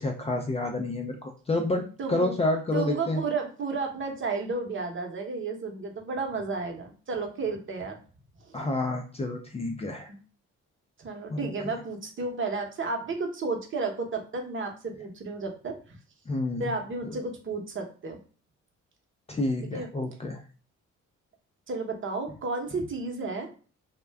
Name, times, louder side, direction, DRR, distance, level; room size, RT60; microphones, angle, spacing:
voice 1, 0.0-3.2 8.5-10.1 11.3-11.4 16.3-16.7 19.3-20.4, left 2 dB, 20° left, 3 dB, 0.4 m, -29 dB
voice 2, 1.7-2.3 2.7-8.0 8.4-8.6 10.1-10.2 11.0-16.0 16.6-18.2 19.7-19.9 21.7-23.6, right 3 dB, 40° right, 2 dB, 0.9 m, -32 dB
2.3 x 2.1 x 3.4 m, 0.38 s
cardioid pair, 90°, 30 cm